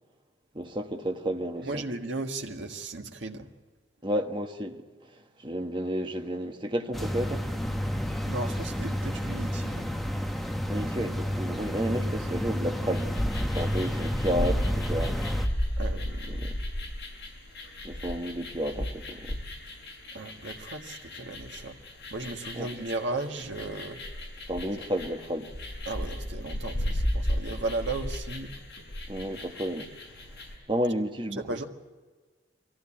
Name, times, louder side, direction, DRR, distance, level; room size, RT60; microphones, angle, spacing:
voice 1, 0.5-1.8 4.0-4.8 5.4-7.4 10.6-13.1 13.4-15.2 16.3-16.6 17.8-19.4 22.5-22.7 24.5-25.5 29.1-29.9 30.7-31.6, equal, 25° right, 1.3 m, -31 dB
voice 2, 1.6-3.5 8.3-9.9 15.8-16.5 20.1-24.0 25.8-28.5 31.3-31.6, right 2 dB, 75° right, 1.7 m, -36 dB
sound 1, 6.9-15.5, equal, ahead, 1.0 m, -31 dB
sound 2, 12.9-30.6, equal, 65° left, 6.0 m, -34 dB
23.5 x 15.5 x 8.7 m
head